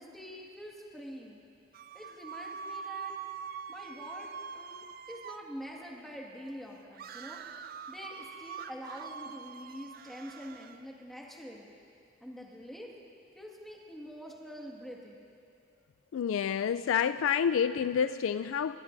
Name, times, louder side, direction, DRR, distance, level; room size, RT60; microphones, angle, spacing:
voice 1, 0.0-1.4 1.9-3.1 3.7-7.4 7.9-11.7 12.2-12.9 13.4-15.3, equal, ahead, -3 dB, 1.8 m, -45 dB
sound 1, 1.7-5.5 6.9-10.8, right 6 dB, 50° right, 0.5 m, -43 dB
voice 2, 16.1-18.8, left 7 dB, 80° left, 12 dB, 0.3 m, -28 dB
24.0 x 21.5 x 2.6 m, 2.5 s
head